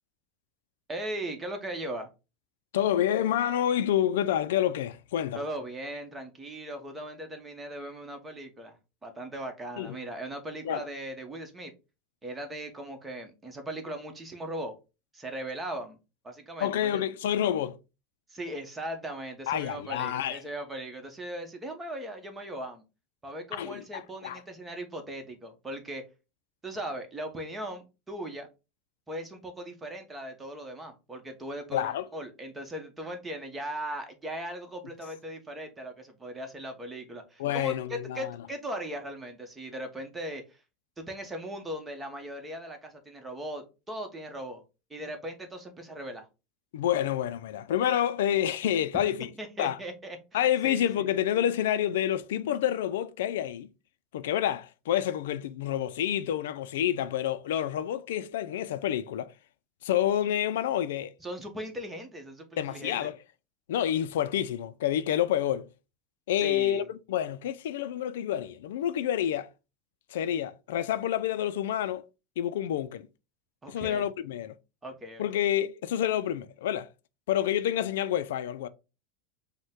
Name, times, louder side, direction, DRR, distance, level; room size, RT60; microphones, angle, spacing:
voice 1, 0.9-2.1 5.3-8.8 9.0-11.7 12.2-14.7 15.1-16.0 16.2-17.0 18.3-22.8 23.2-26.0 26.6-28.5 29.1-40.4 41.0-44.6 44.9-46.3 49.4-51.1 61.2-63.1 66.4-66.8 73.6-74.1 74.8-75.5, right 1 dB, 15° right, 1.0 m, -38 dB
voice 2, 2.7-5.4 9.8-10.0 10.6-10.8 16.6-17.8 19.5-20.4 23.5-24.4 31.7-32.1 37.4-38.4 46.7-49.3 49.6-49.8 50.3-53.7 54.1-59.3 59.8-61.1 62.6-63.1 63.7-65.7 66.3-69.5 70.1-72.0 72.4-73.1 73.7-74.6 75.2-76.9 77.3-78.7, left 11 dB, 85° left, 0.3 m, -28 dB
5.2 x 2.2 x 3.6 m
supercardioid pair, 130°, 0 cm